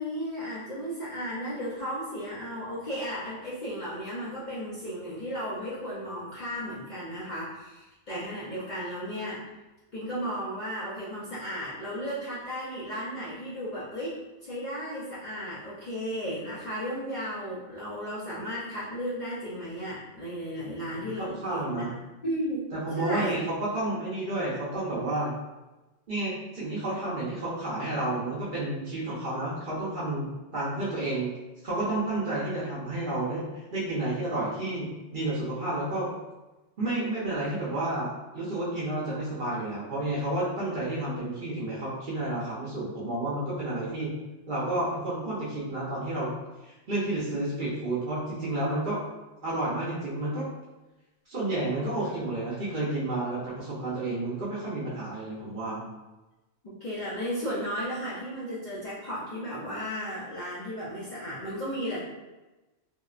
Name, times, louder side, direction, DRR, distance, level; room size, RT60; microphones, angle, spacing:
voice 1, 0.0-9.4 9.9-21.8 22.2-22.7 23.0-23.3 56.6-62.0, equal, 50° left, -9 dB, 0.6 m, -34 dB
voice 2, 20.7-21.9 22.7-25.3 26.1-31.3 31.6-36.1 36.8-38.1 38.3-44.1 44.5-46.3 46.6-49.0 49.4-50.5 51.3-55.8, right 2 dB, 50° right, -8 dB, 0.7 m, -31 dB
2.8 x 2.0 x 2.4 m, 1.1 s
omnidirectional pair, 1.3 m